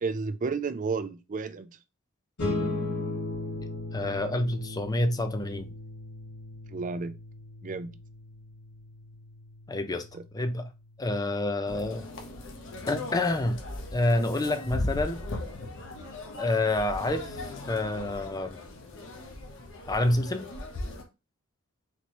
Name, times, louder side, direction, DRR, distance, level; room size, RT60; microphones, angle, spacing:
voice 1, 0.0-1.7 6.7-7.2 7.6-7.9 10.1-10.2, right 4 dB, 35° right, 0.4 m, -32 dB
sound 1, 2.4-13.1, left 2 dB, 80° left, 2.3 m, -38 dB
voice 2, 3.9-5.7 9.7-10.1 10.3-10.7 11.0-12.1 12.9-13.6 13.9-15.2 16.4-17.4 17.7-18.6 19.9-20.5, left 2 dB, 15° left, 0.4 m, -28 dB
sound 2, 11.7-21.0, left 2 dB, 60° left, 0.9 m, -38 dB
4.1 x 3.2 x 3.0 m
head